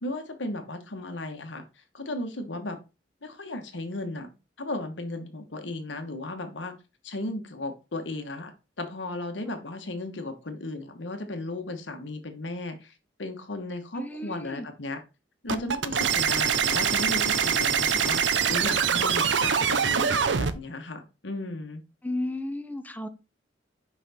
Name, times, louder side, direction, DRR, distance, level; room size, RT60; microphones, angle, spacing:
voice 1, 0.0-2.8 3.2-4.3 4.6-6.7 7.0-8.5 8.8-12.9 13.2-15.0 15.4-18.2 18.5-21.8, left 2 dB, 75° left, 1.3 m, -35 dB
voice 2, 14.0-14.7 22.0-23.1, left 1 dB, 10° left, 0.7 m, -33 dB
sound 1, 15.5-20.5, right 7 dB, 75° right, 0.7 m, -24 dB
5.9 x 5.4 x 4.2 m
head